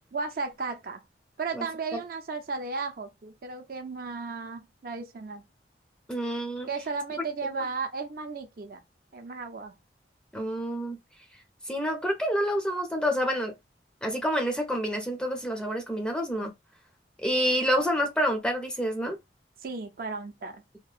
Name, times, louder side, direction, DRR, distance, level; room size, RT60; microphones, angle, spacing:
voice 1, 0.1-1.0 1.4-5.4 6.7-8.8 9.1-9.7 19.6-20.6, right 4 dB, 50° right, 0.5 m, -34 dB
voice 2, 6.1-6.7 7.5-7.6 10.3-11.0 11.7-13.5 14.0-16.5 17.2-19.2, equal, 5° left, 0.5 m, -28 dB
2.8 x 2.2 x 2.3 m
head